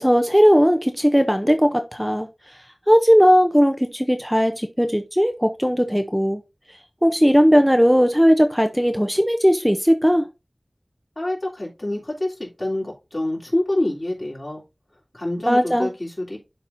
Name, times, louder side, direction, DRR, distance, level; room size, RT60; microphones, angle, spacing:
voice 1, 0.0-2.3 2.9-6.4 7.0-10.2 15.5-15.9, equal, ahead, 0.7 m, -17 dB
voice 2, 11.1-14.6 15.1-16.4, left 1 dB, 50° left, 3.4 m, -26 dB
11.5 x 4.1 x 2.7 m
wide cardioid pair, 40°, 0 cm